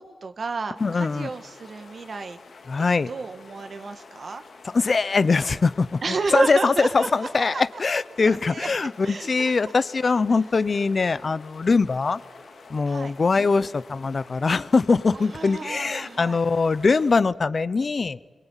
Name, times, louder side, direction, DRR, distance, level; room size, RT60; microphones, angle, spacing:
voice 1, 0.0-2.4 2.8-4.4 6.0-7.1 7.4-7.8 8.3-9.7 11.2-11.3 12.9-13.1 13.5-13.7 15.1-16.4, right 4 dB, 55° right, 8 dB, 1.7 m, -32 dB
sound 1, 0.8-17.2, left 4 dB, 75° left, 2.8 m, -48 dB
voice 2, 0.8-1.3 2.7-3.1 4.6-12.2 12.7-18.2, left 4 dB, 50° left, 17 dB, 0.9 m, -22 dB
26.0 x 22.5 x 9.2 m, 1.5 s
cardioid pair, 70°, 0 cm